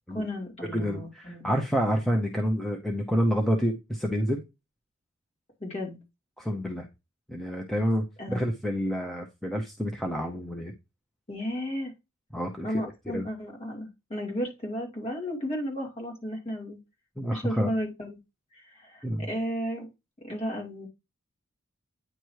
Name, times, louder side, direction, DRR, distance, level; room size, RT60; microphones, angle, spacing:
voice 1, 0.1-1.4 5.6-6.0 8.2-8.4 11.3-11.9 12.6-16.8 17.3-18.2 18.5-19.9 20.2-20.9, equal, 30° left, 0 dB, 2.5 m, -34 dB
voice 2, 0.6-4.4 6.4-6.9 7.3-8.1 8.3-10.7 12.3-12.8 13.1-13.3 17.2-17.7 19.0-19.3, equal, ahead, 2 dB, 0.7 m, -28 dB
9.1 x 3.0 x 4.6 m, 0.24 s
head